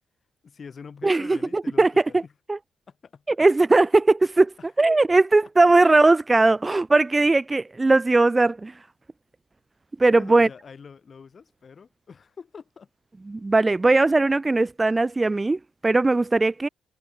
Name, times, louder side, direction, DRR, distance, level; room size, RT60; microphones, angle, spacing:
voice 1, 0.4-2.3 2.9-3.5 4.6-4.9 10.1-12.9, left 6 dB, 40° left, 6.1 m, -45 dB
voice 2, 1.0-1.9 2.5-2.6 3.4-8.7 10.0-10.5 13.3-16.7, right 3 dB, 20° right, 0.8 m, -19 dB
cardioid pair, 90°, 0 cm